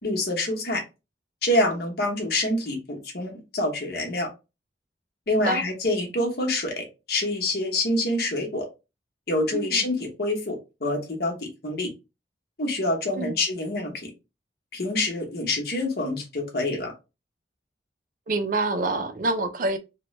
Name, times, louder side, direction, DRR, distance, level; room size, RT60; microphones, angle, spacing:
voice 1, 0.0-0.8 1.4-4.3 5.3-8.7 9.3-11.9 12.6-14.1 14.7-16.9, left 1 dB, 60° left, 0.9 m, -26 dB
voice 2, 9.5-9.8 13.2-13.4 18.3-19.8, right 2 dB, 50° right, 0.4 m, -26 dB
3.0 x 2.2 x 3.0 m
head